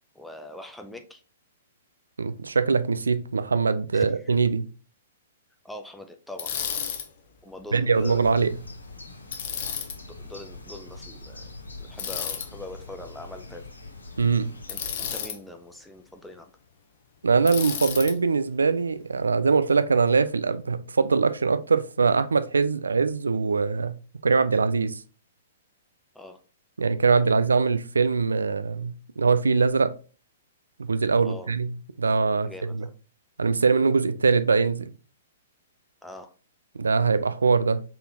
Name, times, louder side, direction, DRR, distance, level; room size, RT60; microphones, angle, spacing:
voice 1, 0.1-1.2 3.9-4.3 5.6-6.6 7.4-8.4 10.2-11.5 11.8-13.7 14.7-16.5 26.1-26.4 31.2-31.5 32.4-32.9 36.0-36.3, left 1 dB, ahead, 0.4 m, -42 dB
voice 2, 2.2-4.7 7.7-8.5 14.2-14.5 17.2-24.0 24.2-25.0 26.8-29.9 30.8-32.5 32.7-32.9 33.4-34.9 36.8-37.8, right 4 dB, 70° right, 0.3 m, -22 dB
Bicycle, 6.4-7.1 9.3-10.0 12.0-12.5 14.7-15.4 17.5-18.1, left 8 dB, 45° left, 0.7 m, -31 dB
sound 1, 7.9-15.1, left 2 dB, 75° left, 0.9 m, -43 dB
4.1 x 3.7 x 2.7 m
figure-of-eight pair, 110°, 0 cm